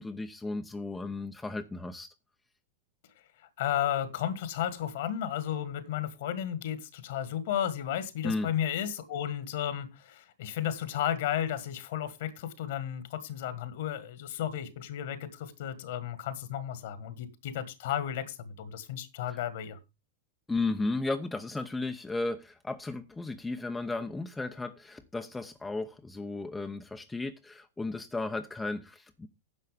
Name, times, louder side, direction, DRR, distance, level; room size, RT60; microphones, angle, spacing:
voice 1, 0.0-2.1 8.2-8.5 19.3-19.4 20.5-29.3, left 3 dB, 10° left, 0.9 m, -34 dB
voice 2, 3.6-19.8, left 10 dB, 55° left, 1.8 m, -33 dB
10.5 x 6.7 x 5.1 m
figure-of-eight pair, 90°, 0 cm